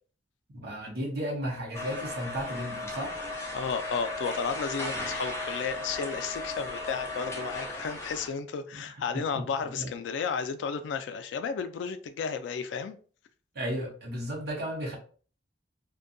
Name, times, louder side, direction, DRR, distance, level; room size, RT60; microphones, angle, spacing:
voice 1, 0.5-3.2 8.7-9.5 9.8-9.9 13.5-15.0, equal, 60° right, 0.7 m, -34 dB
sound 1, 1.7-8.3, left 2 dB, 15° left, 0.5 m, -36 dB
voice 2, 3.5-13.0, left 5 dB, 90° left, 0.3 m, -33 dB
2.6 x 2.2 x 2.5 m
head